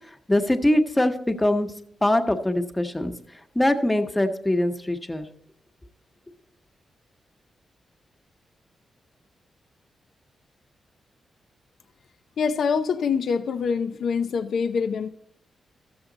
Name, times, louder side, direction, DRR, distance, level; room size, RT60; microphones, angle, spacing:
voice 1, 0.3-1.7 2.0-3.2 3.5-5.3, left 1 dB, 15° left, 1.0 m, -22 dB
voice 2, 12.4-15.1, left 6 dB, 75° left, 0.5 m, -25 dB
13.5 x 7.1 x 3.9 m
cardioid pair, 80°, 0 cm